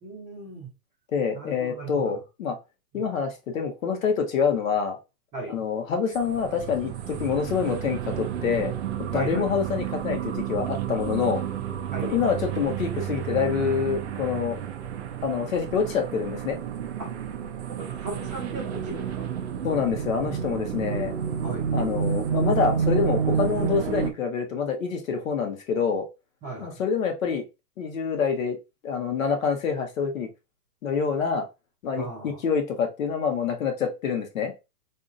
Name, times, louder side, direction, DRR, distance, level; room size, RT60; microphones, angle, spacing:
voice 1, 0.0-0.7 1.3-2.2 2.9-3.0 5.3-5.6 9.1-9.5 11.9-12.1 17.0-17.1 17.7-19.3 21.4-21.7 26.4-26.8 31.9-32.4, right 3 dB, 10° right, -7 dB, 0.7 m, -37 dB
voice 2, 1.1-2.6 2.9-5.0 5.5-8.7 9.1-11.4 12.0-14.6 15.2-16.6 19.6-21.1 21.7-26.1 26.6-27.4 27.8-28.6 28.8-30.3 30.8-31.5 31.8-34.5, left 6 dB, 55° left, 4 dB, 1.0 m, -26 dB
sound 1, 6.1-24.1, right 7 dB, 45° right, 0.5 m, -30 dB
4.0 x 2.7 x 2.4 m, 0.26 s
hypercardioid pair, 170°, 47 cm